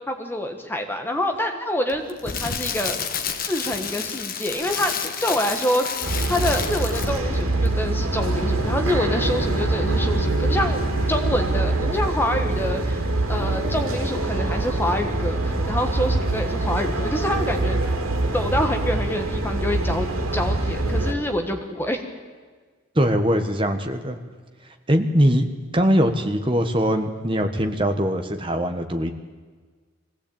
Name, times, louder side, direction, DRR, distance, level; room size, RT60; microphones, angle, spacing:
voice 1, 0.1-3.0 3.4-4.9 5.2-5.9 6.3-10.8 11.1-17.8 18.3-22.1, left 1 dB, 10° left, 5 dB, 1.4 m, -26 dB
Crackle, 1.9-7.4 7.7-7.8, left 6 dB, 45° left, 1.4 m, -30 dB
sound 1, 6.0-21.1, right 2 dB, 90° right, 2.7 m, -24 dB
Bowed string instrument, 8.1-13.1, right 1 dB, 85° left, 2.7 m, -29 dB
voice 2, 22.9-24.2 24.9-25.5 25.7-29.1, equal, 25° right, 6 dB, 1.4 m, -21 dB
22.0 x 16.5 x 8.8 m, 1.5 s
head